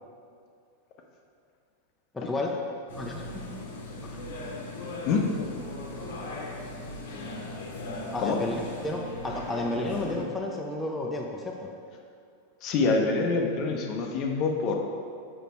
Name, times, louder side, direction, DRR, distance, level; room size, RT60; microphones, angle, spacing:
sound 1, 2.9-10.3, left 2 dB, 60° left, 1.1 m, -38 dB
voice 1, 8.1-8.5 8.8-11.7, left 2 dB, 10° left, -1 dB, 0.7 m, -31 dB
voice 2, 12.6-14.8, left 4 dB, 40° left, 2 dB, 0.8 m, -25 dB
6.7 x 5.0 x 4.5 m, 2.3 s
figure-of-eight pair, 90°, 0 cm